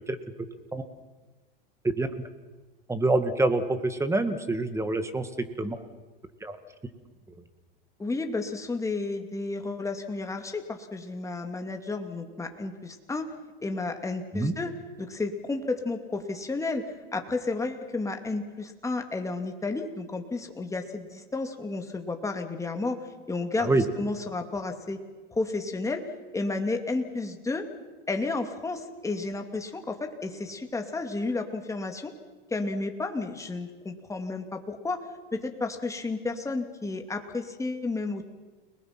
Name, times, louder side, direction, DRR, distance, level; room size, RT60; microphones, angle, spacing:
voice 1, 2.9-5.3 5.6-5.8 6.4-6.6 14.3-14.5 23.6-23.8, right 2 dB, 10° right, 9 dB, 1.8 m, -26 dB
voice 2, 8.0-13.3 13.6-14.7 15.0-23.0 23.3-25.0 25.3-26.0 26.3-27.7 28.1-32.1 32.5-35.0 35.3-38.2, left 3 dB, 10° left, 4 dB, 2.4 m, -32 dB
30.0 x 20.0 x 6.0 m, 1.3 s
supercardioid pair, 125°, 30 cm